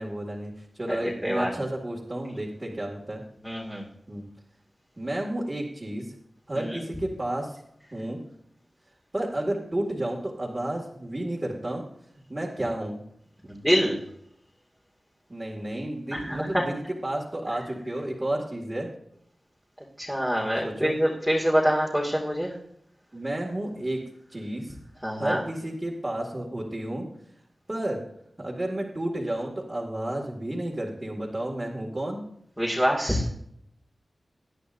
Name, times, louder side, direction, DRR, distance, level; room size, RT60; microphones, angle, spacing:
voice 1, 0.0-3.2 4.1-4.3 5.0-6.1 6.5-7.6 7.9-8.2 9.1-11.8 12.3-13.0 15.3-18.9 20.6-20.9 23.1-24.8 25.2-27.1 27.7-28.0 28.4-32.2, right 1 dB, 25° right, -5 dB, 2.2 m, -31 dB
voice 2, 3.4-3.8 6.6-6.8 13.5-14.0 16.3-16.6 20.0-22.5 25.0-25.4 32.6-33.2, equal, ahead, -4 dB, 2.2 m, -25 dB
18.5 x 11.0 x 2.7 m, 0.72 s
wide cardioid pair, 95°, 0 cm